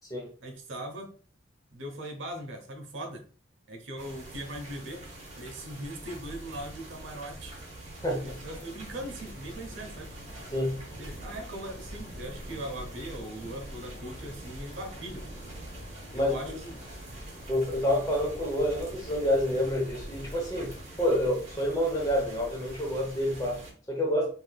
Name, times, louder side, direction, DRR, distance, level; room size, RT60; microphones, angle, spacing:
voice 1, 0.4-1.1 1.7-3.2 3.7-5.0 5.4-7.5 8.2-10.1 11.0-15.3 16.1-16.8, right 1 dB, 80° right, 0.7 m, -40 dB
sound 1, 4.0-23.7, right 1 dB, 35° right, 0.9 m, -45 dB
voice 2, 8.0-8.4 10.5-10.8 16.1-16.5 17.5-24.3, equal, 20° left, 0.8 m, -28 dB
sound 2, 8.8-20.8, equal, 60° left, 1.1 m, -48 dB
3.2 x 2.7 x 2.3 m
head